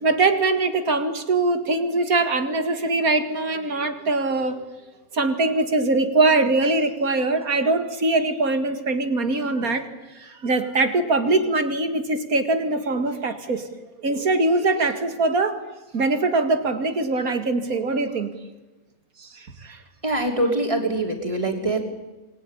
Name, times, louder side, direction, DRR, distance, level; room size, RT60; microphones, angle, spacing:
voice 1, 0.0-4.6 5.1-9.9 10.2-13.6 14.0-15.6 15.9-18.3 19.2-19.8, right 3 dB, 90° right, 8 dB, 2.6 m, -22 dB
voice 2, 20.0-21.8, right 2 dB, 20° right, 3 dB, 3.6 m, -23 dB
26.5 x 20.0 x 10.0 m, 1.1 s
omnidirectional pair, 1.5 m